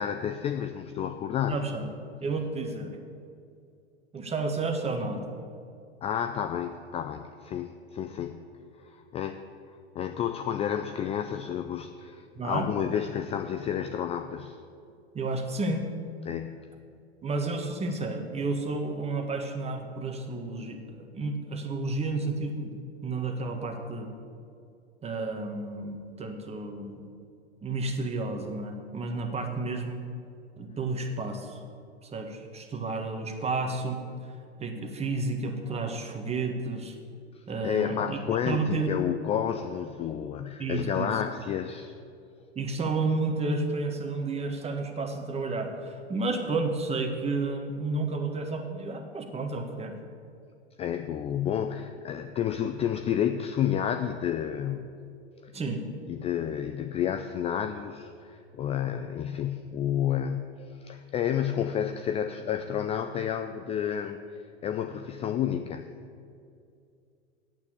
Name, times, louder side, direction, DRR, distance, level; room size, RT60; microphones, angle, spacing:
voice 1, 0.0-1.6 6.0-8.4 8.8-9.4 9.9-14.6 16.3-16.6 37.3-41.9 50.8-54.9 55.4-55.5 56.1-65.9, left 9 dB, 20° left, 8 dB, 0.4 m, -30 dB
voice 2, 1.5-1.9 2.2-3.0 4.1-5.2 12.3-12.7 15.1-15.9 17.2-22.7 23.0-24.1 25.0-27.0 27.6-30.0 30.6-31.6 32.0-34.0 34.6-37.0 37.5-38.2 38.4-39.0 40.6-41.1 42.5-49.9 55.5-55.8, right 3 dB, 20° right, 4 dB, 1.5 m, -31 dB
8.9 x 8.5 x 8.4 m, 2.4 s
hypercardioid pair, 95°, 33 cm